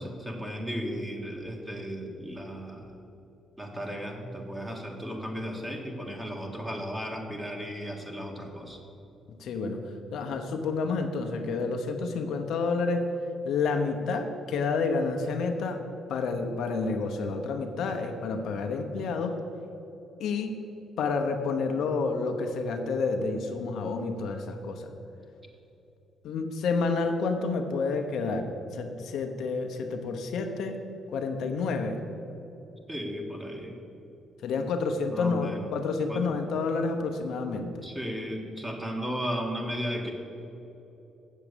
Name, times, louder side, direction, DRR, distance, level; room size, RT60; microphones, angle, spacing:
voice 1, 0.0-2.9 3.6-8.8 32.9-33.7 35.1-35.7 36.1-36.2 37.8-40.1, equal, 15° right, 1 dB, 1.7 m, -35 dB
voice 2, 9.3-9.8 10.1-13.1 13.4-15.8 16.1-19.4 20.2-20.6 21.0-24.9 26.2-30.8 31.1-32.0 34.4-37.7, left 4 dB, 75° left, 5 dB, 0.9 m, -29 dB
7.8 x 7.3 x 6.8 m, 3.0 s
cardioid pair, 90°, 0 cm